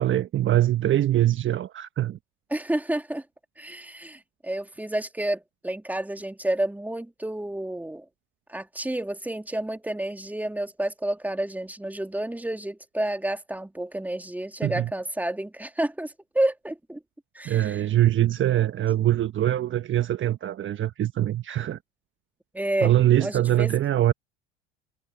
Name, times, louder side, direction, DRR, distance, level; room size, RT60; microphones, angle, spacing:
voice 1, 0.0-2.2 14.6-14.9 17.4-21.8 22.8-24.1, right 13 dB, 40° right, 1.2 m, -23 dB
voice 2, 2.5-3.2 3.6-8.0 8.5-17.0 17.3-17.8 22.5-22.9 23.2-23.8, right 1 dB, 5° right, 3.3 m, -30 dB
hypercardioid pair, 75°, 30 cm